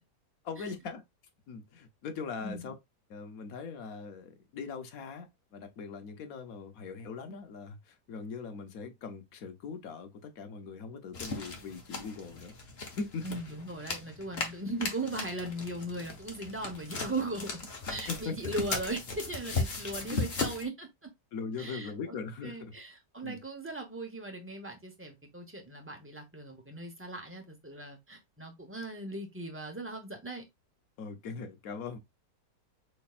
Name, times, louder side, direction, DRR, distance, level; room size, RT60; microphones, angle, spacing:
voice 1, 0.4-1.0 1.5-2.7 3.1-12.6 12.9-13.4 18.1-18.4 20.1-20.2 21.3-22.7 23.2-23.4 31.0-32.0, left 5 dB, 60° left, 1.2 m, -40 dB
sound 1, 11.1-20.6, left 3 dB, 40° left, 1.2 m, -37 dB
voice 2, 13.2-20.9 21.6-22.2 22.4-30.4, right 2 dB, 10° right, 0.8 m, -38 dB
6.3 x 3.4 x 2.4 m
omnidirectional pair, 1.9 m